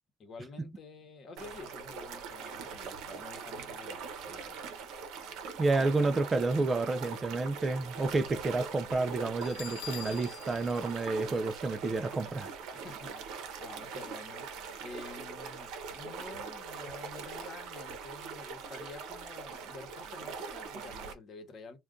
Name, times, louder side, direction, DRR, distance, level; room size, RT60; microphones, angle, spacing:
voice 1, 0.2-4.7 12.7-14.5 14.8-21.8, left 3 dB, 40° left, 1.0 m, -49 dB
sound 1, 1.4-21.1, right 5 dB, 70° right, 0.7 m, -42 dB
voice 2, 5.6-12.5, right 3 dB, 20° right, 0.3 m, -30 dB
Bell, 9.4-12.1, left 12 dB, 80° left, 0.5 m, -47 dB
2.4 x 2.2 x 3.7 m
cardioid pair, 115°, 0 cm